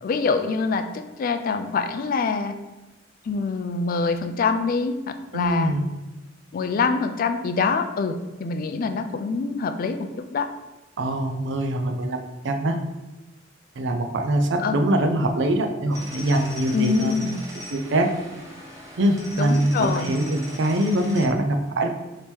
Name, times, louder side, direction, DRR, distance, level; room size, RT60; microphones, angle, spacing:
voice 1, 0.0-2.5 3.2-5.7 6.5-10.0 10.3-10.5 14.6-14.8 16.7-17.4 19.4-20.1, left 4 dB, 50° left, 7 dB, 0.3 m, -25 dB
voice 2, 5.3-5.9 11.0-12.8 13.8-17.1 17.7-18.1 19.0-21.9, right 1 dB, 65° right, 5 dB, 0.5 m, -23 dB
sound 1, 15.9-21.3, equal, 15° right, 0.7 m, -40 dB
3.5 x 2.9 x 4.4 m, 1.1 s
head